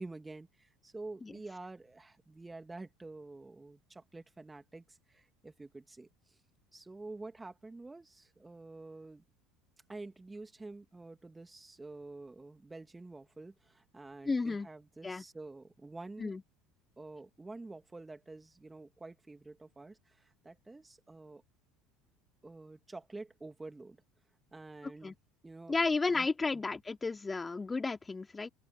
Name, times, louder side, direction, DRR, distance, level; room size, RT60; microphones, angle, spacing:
voice 1, 0.0-6.4 6.7-9.2 9.9-16.3 17.0-21.4 22.4-24.0 24.5-25.1 25.4-25.8 26.1-26.3, right 2 dB, 15° right, 2.6 m, -48 dB
voice 2, 14.2-14.7 15.0-15.2 16.2-16.4 25.0-25.1 25.7-28.5, left 3 dB, 20° left, 2.9 m, -33 dB
open air
hypercardioid pair, 65°, 0 cm